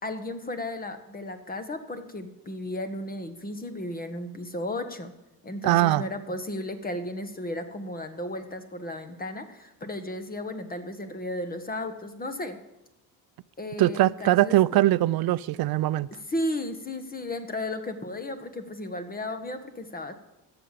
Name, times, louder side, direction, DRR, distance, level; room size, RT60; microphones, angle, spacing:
voice 1, 0.0-5.1 5.4-12.6 13.6-14.8 16.1-20.1, left 1 dB, 20° left, 1.4 m, -34 dB
voice 2, 5.6-6.0 13.8-16.1, right 15 dB, 65° right, 0.5 m, -22 dB
14.0 x 8.0 x 7.5 m
cardioid pair, 130°, 40 cm